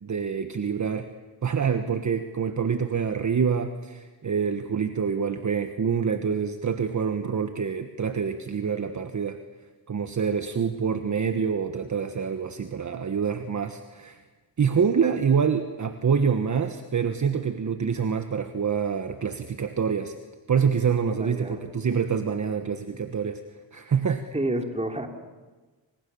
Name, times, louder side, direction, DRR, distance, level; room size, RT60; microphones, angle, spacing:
voice 1, 0.0-1.1 1.4-9.4 9.9-14.2 14.6-20.1 20.5-23.4 23.7-24.2, right 6 dB, 40° right, 8 dB, 1.4 m, -26 dB
voice 2, 21.2-21.6 24.3-25.1, right 1 dB, 15° right, 4 dB, 3.1 m, -29 dB
28.5 x 26.5 x 7.0 m, 1.3 s
cardioid pair, 115°, 44 cm